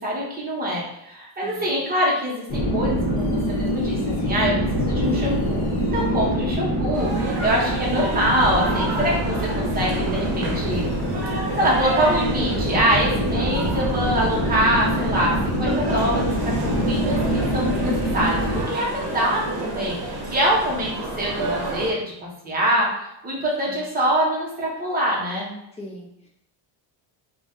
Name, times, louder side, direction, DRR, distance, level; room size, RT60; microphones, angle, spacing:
voice 1, 0.0-10.9 11.6-18.4 18.7-25.5, equal, 20° right, -5 dB, 0.6 m, -24 dB
sound 1, 2.5-18.7, equal, 40° left, 0.7 m, -25 dB
sound 2, 6.9-21.9, right 2 dB, 55° right, 0.8 m, -30 dB
voice 2, 25.7-26.3, left 1 dB, 15° left, -2 dB, 0.3 m, -40 dB
2.5 x 2.2 x 3.4 m, 0.80 s
cardioid pair, 170°, 47 cm